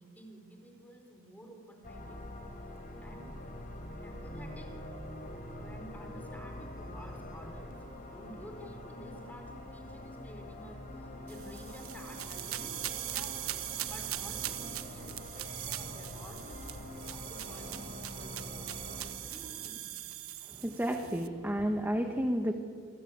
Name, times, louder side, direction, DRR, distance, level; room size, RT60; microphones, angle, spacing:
voice 1, 0.0-2.2 3.0-3.3 4.0-4.7 5.5-7.8 8.0-13.4 13.9-18.7 19.2-19.9, equal, 10° left, 3 dB, 4.3 m, -51 dB
sound 1, 1.8-19.1, left 1 dB, 40° left, 4.4 m, -45 dB
sound 2, 11.3-21.3, right 14 dB, 85° right, 1.2 m, -41 dB
voice 2, 20.5-22.5, equal, 10° right, 5 dB, 1.4 m, -31 dB
28.0 x 24.0 x 8.7 m, 2.2 s
head